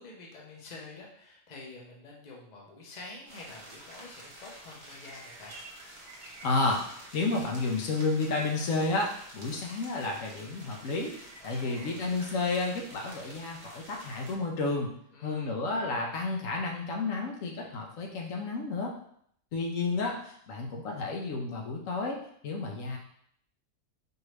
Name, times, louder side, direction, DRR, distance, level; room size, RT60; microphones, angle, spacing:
voice 1, 0.0-5.5 11.4-12.0 15.1-15.5, left 3 dB, 40° left, -2 dB, 0.8 m, -48 dB
sound 1, 3.3-14.4, right 1 dB, 40° right, 1.0 m, -49 dB
voice 2, 6.4-6.8 7.1-11.1 11.4-14.9 15.2-18.9 19.5-23.0, left 3 dB, 75° left, 0 dB, 1.1 m, -31 dB
4.6 x 2.7 x 3.2 m, 0.66 s
omnidirectional pair, 1.4 m